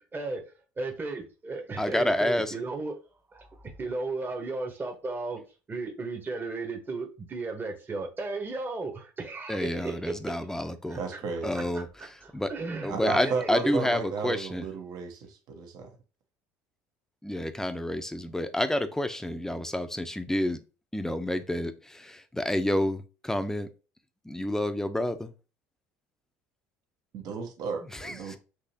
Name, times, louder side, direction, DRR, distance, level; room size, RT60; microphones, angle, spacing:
voice 1, 0.8-3.0 3.3-5.4 5.7-10.1 10.9-11.2 11.7-12.1 12.5-13.7, right 3 dB, 25° right, 1.1 m, -35 dB
voice 2, 1.8-2.5 9.5-11.0 11.4-11.9 12.3-12.5 12.8-14.6 17.2-20.6 20.9-23.7 24.2-25.3 27.9-28.4, left 1 dB, 5° left, 0.7 m, -29 dB
voice 3, 11.0-11.6 12.9-15.9 27.1-28.4, right 5 dB, 60° right, 1.2 m, -34 dB
6.1 x 2.8 x 2.8 m
hypercardioid pair, 75°, 7 cm